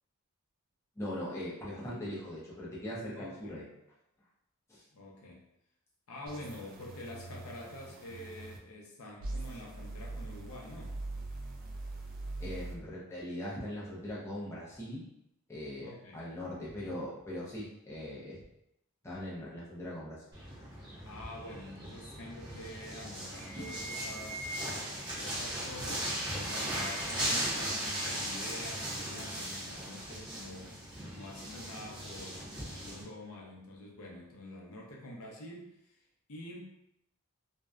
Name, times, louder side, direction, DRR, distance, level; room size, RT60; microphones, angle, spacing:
voice 1, 1.0-3.6 4.7-4.8 12.4-15.0 15.5-18.4 19.0-20.2 25.8-26.0, left 1 dB, 15° left, -7 dB, 0.5 m, -40 dB
voice 2, 3.2-3.6 4.9-5.4 6.1-11.0 15.8-16.2 20.7-24.5 25.1-30.8 31.1-36.0 36.3-36.8, left 1 dB, 75° left, -2 dB, 0.6 m, -47 dB
sound 1, 6.3-8.6 9.2-12.7, right 2 dB, 40° right, 0.3 m, -42 dB
sound 2, 20.3-33.0, right 1 dB, 20° right, 0.8 m, -38 dB
sound 3, 22.8-23.0 23.3-25.0 25.8-27.3 27.5-28.3, equal, 80° right, 1.1 m, -46 dB
2.6 x 2.1 x 2.2 m, 0.82 s
head